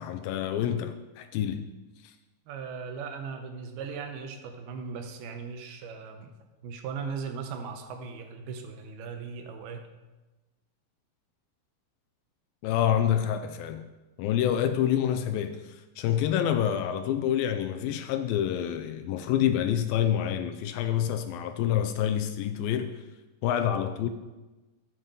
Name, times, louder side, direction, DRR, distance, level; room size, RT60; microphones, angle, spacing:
voice 1, 0.0-1.7 12.6-13.8 14.2-22.9 23.4-24.1, left 10 dB, 80° left, 2.2 m, -27 dB
voice 2, 2.5-6.3 6.6-9.8, right 5 dB, 80° right, 2.8 m, -38 dB
13.0 x 7.9 x 3.8 m
omnidirectional pair, 4.4 m